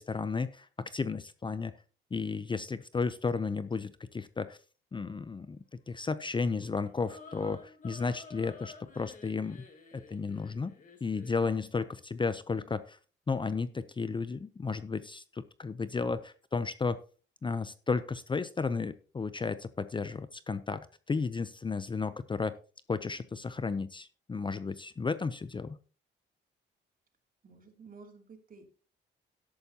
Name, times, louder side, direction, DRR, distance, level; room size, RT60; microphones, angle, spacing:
voice 1, 0.0-1.7 2.1-4.6 4.9-9.6 9.9-10.7 11.0-13.0 13.3-17.0 17.4-22.6 22.9-25.8, left 4 dB, 25° left, 14 dB, 0.6 m, -33 dB
sound 1, 6.3-11.6, left 4 dB, 40° left, 2.7 m, -52 dB
voice 2, 27.4-28.7, right 4 dB, 45° right, 3 dB, 2.8 m, -52 dB
12.5 x 10.5 x 2.9 m, 0.37 s
cardioid pair, 90°, 20 cm